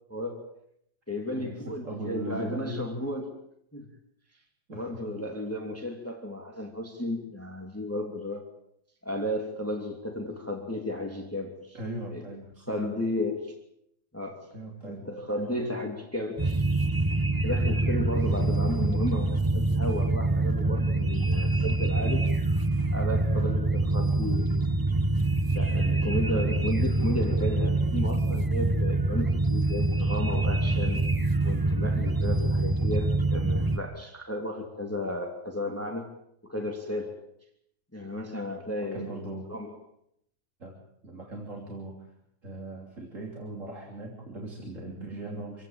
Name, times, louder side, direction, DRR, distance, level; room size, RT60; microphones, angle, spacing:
voice 1, 0.1-0.4 1.1-3.3 3.7-3.9 4.7-8.5 9.0-11.8 12.1-12.2 12.7-13.5 14.1-14.5 14.9-16.7 17.4-22.3 22.9-24.6 25.5-31.1 31.4-36.1 36.4-37.2 37.9-39.1 39.5-39.7, left 1 dB, 5° left, 2 dB, 2.8 m, -33 dB
voice 2, 1.3-3.0 4.7-5.1 11.7-13.0 14.5-15.2 18.2-18.4 38.8-39.5 40.6-40.8 41.0-42.1 42.4-45.6, right 1 dB, 40° right, 0 dB, 3.5 m, -39 dB
sound 1, 16.4-33.8, right 2 dB, 15° right, 0.7 m, -25 dB
27.0 x 16.0 x 9.0 m, 0.76 s
omnidirectional pair, 2.0 m